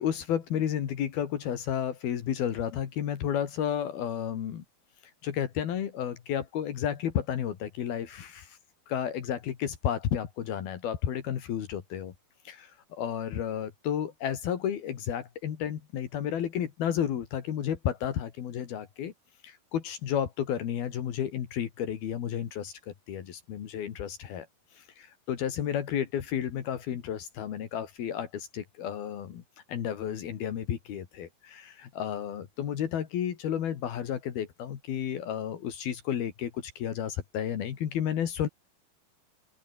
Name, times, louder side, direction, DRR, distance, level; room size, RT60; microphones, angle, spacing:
voice 1, 0.0-4.6 5.2-8.6 8.9-12.1 12.5-19.1 19.4-24.5 24.7-29.4 29.7-38.5, left 9 dB, 75° left, 4.1 m, -32 dB
open air
omnidirectional pair, 4.4 m